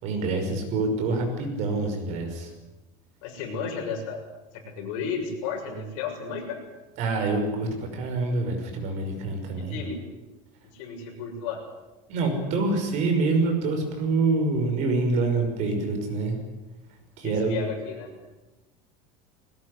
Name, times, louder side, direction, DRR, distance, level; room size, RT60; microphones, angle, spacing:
voice 1, 0.0-2.5 7.0-9.8 12.1-16.3 17.2-17.6, right 3 dB, 45° right, 5 dB, 5.8 m, -26 dB
voice 2, 3.2-4.2 4.5-6.6 9.7-10.0 10.7-11.6 17.2-18.1, left 5 dB, 65° left, 3 dB, 6.9 m, -33 dB
20.5 x 19.5 x 9.8 m, 1.1 s
cardioid pair, 170°, 17 cm